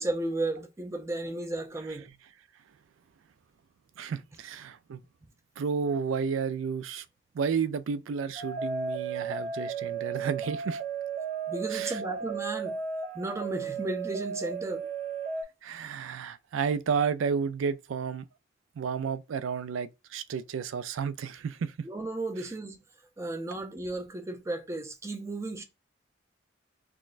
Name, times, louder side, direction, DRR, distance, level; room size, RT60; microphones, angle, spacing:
voice 1, 0.0-2.1 11.5-12.8 13.1-14.9 21.8-22.8 23.2-25.6, right 2 dB, 15° right, 0.4 m, -34 dB
voice 2, 4.0-5.0 5.6-7.1 7.3-10.8 11.7-12.0 15.6-18.2 18.8-21.7, right 6 dB, 80° right, 0.3 m, -31 dB
sound 1, 8.4-15.4, right 5 dB, 35° right, 1.0 m, -34 dB
6.0 x 2.1 x 2.4 m
head